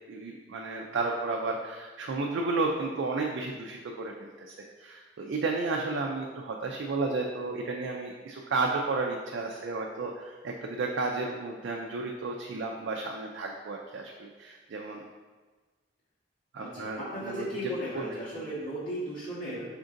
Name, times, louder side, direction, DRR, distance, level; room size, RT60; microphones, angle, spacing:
voice 1, 0.1-15.0 16.5-18.0 18.4-18.5, right 3 dB, 70° right, 0 dB, 0.4 m, -33 dB
voice 2, 16.6-19.7, equal, 80° left, -11 dB, 1.3 m, -36 dB
5.1 x 3.8 x 2.5 m, 1.3 s
head